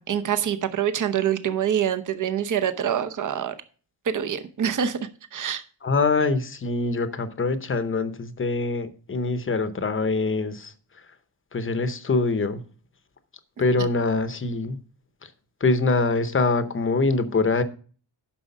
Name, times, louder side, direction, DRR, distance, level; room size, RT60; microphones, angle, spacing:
voice 1, 0.0-3.5 4.1-5.0 5.3-5.6, right 9 dB, 40° right, 11 dB, 0.8 m, -25 dB
voice 2, 5.8-10.7 11.5-12.6 13.6-14.8 15.6-17.6, left 3 dB, 25° left, 12 dB, 0.8 m, -24 dB
9.9 x 6.3 x 5.3 m, 0.40 s
wide cardioid pair, 180°, 45 cm